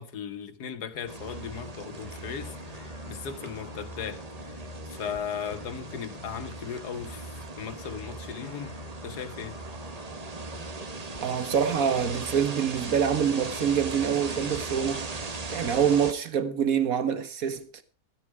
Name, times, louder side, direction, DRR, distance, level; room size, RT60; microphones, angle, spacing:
voice 1, 0.0-4.6 4.9-8.7 9.0-9.6, left 7 dB, 90° left, 1.8 m, -37 dB
sound 1, 0.9-5.2 5.5-11.2 11.5-16.1, left 2 dB, 35° left, 1.2 m, -45 dB
sound 2, 1.1-16.1, right 4 dB, 30° right, 0.9 m, -39 dB
voice 2, 11.2-15.1 15.5-17.7, right 7 dB, 65° right, 1.8 m, -26 dB
14.0 x 13.0 x 4.8 m
omnidirectional pair, 1.7 m